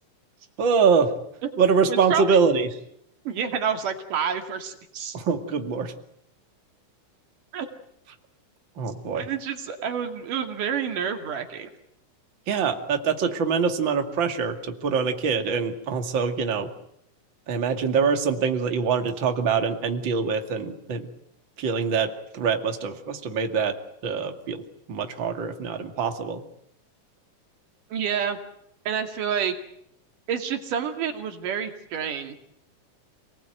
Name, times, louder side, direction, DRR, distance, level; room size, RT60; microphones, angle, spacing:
voice 1, 0.6-1.1 1.6-2.7 5.1-5.9 8.8-9.3 12.5-16.7 17.5-21.1 21.6-23.7 24.0-24.6 24.9-26.4, right 5 dB, 40° right, 5 dB, 2.8 m, -24 dB
voice 2, 1.9-2.4 3.3-5.2 7.5-7.7 9.2-11.7 27.9-28.4 28.9-29.5 30.3-32.4, right 7 dB, 90° right, 5 dB, 3.9 m, -28 dB
28.0 x 19.5 x 9.2 m, 0.76 s
omnidirectional pair, 3.6 m